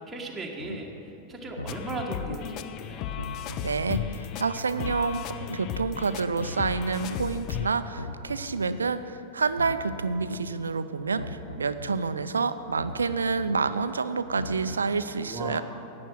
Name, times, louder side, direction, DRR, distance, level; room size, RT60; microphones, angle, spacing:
voice 1, 0.1-3.2 15.2-15.6, right 2 dB, 10° right, -2 dB, 1.5 m, -37 dB
sound 1, 0.6-0.8 1.4-2.4 3.0-4.0 4.6-5.6 6.2-7.2 7.8-8.8 9.4-10.4 11.0-12.0 12.6-13.6 14.2-14.9, left 1 dB, 85° left, 0.6 m, -39 dB
sound 2, 1.7-7.7, left 10 dB, 40° left, 0.5 m, -35 dB
voice 2, 3.6-15.6, right 4 dB, 75° right, 12 dB, 0.4 m, -28 dB
12.0 x 8.6 x 6.3 m, 3.0 s
figure-of-eight pair, 90°, 0 cm